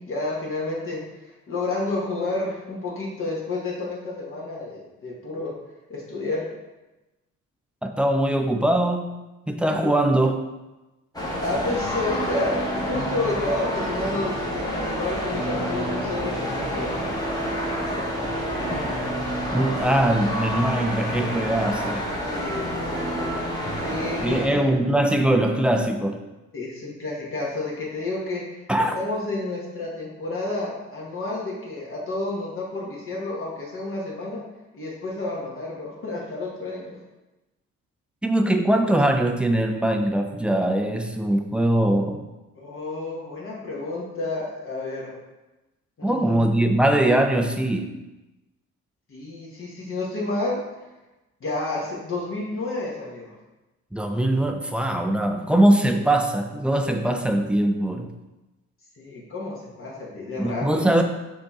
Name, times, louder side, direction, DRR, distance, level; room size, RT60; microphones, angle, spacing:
voice 1, 0.0-5.5 5.9-6.5 9.8-9.9 11.4-16.9 22.3-23.3 23.8-24.6 26.5-28.7 28.9-34.4 34.7-37.0 42.6-45.1 46.0-46.5 49.1-50.6 51.4-53.3 59.0-60.9, left 2 dB, 45° left, -4 dB, 1.2 m, -30 dB
voice 2, 7.8-9.2 9.5-10.3 19.5-22.0 24.2-26.2 28.7-28.9 38.2-42.2 46.0-48.0 53.9-58.1 60.4-61.0, right 1 dB, 5° right, 5 dB, 0.4 m, -21 dB
sound 1, 11.1-24.5, equal, 10° left, 1.1 m, -28 dB
5.1 x 2.9 x 3.6 m, 1.0 s
cardioid pair, 90°, 30 cm